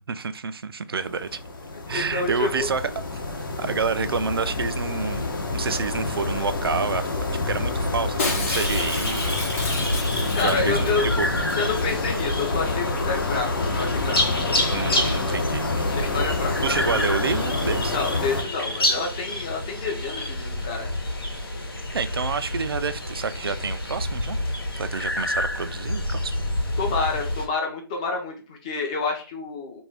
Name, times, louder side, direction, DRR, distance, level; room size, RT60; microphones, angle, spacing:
voice 1, 0.0-1.4 1.9-2.8 3.3-7.1 7.4-9.3 10.4-11.3 14.7-16.0 16.6-18.0 21.9-24.4 24.7-26.3, right 5 dB, 80° right, 11 dB, 0.4 m, -28 dB
sound 1, 1.0-18.4, left 2 dB, 65° left, 0.8 m, -27 dB
voice 2, 1.9-2.7 10.3-11.1 11.6-14.2 15.9-16.5 17.9-20.9 26.8-29.8, left 4 dB, 20° left, 1 dB, 0.5 m, -28 dB
Shatter, 8.2-10.9 11.2-11.3 11.5-11.9 12.2-12.3, left 3 dB, 35° left, 0.8 m, -31 dB
sound 2, 8.5-27.5, left 1 dB, 90° left, 1.1 m, -29 dB
2.6 x 2.2 x 3.2 m, 0.36 s
hypercardioid pair, 160°, 12 cm